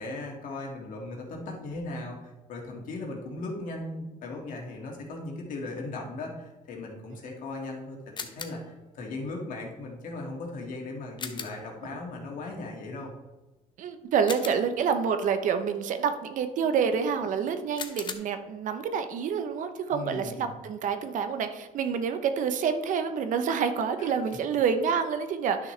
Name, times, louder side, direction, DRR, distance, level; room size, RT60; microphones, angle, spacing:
voice 1, 0.0-13.1 19.9-20.5 24.0-24.1, left 2 dB, 65° left, 0 dB, 2.1 m, -38 dB
sound 1, 8.2-8.8 11.2-11.7 14.3-14.9 17.8-18.1, left 5 dB, 30° left, 0.8 m, -38 dB
voice 2, 13.8-25.7, right 6 dB, 60° right, 8 dB, 0.9 m, -28 dB
10.5 x 6.2 x 3.3 m, 1.1 s
cardioid pair, 105°, 15 cm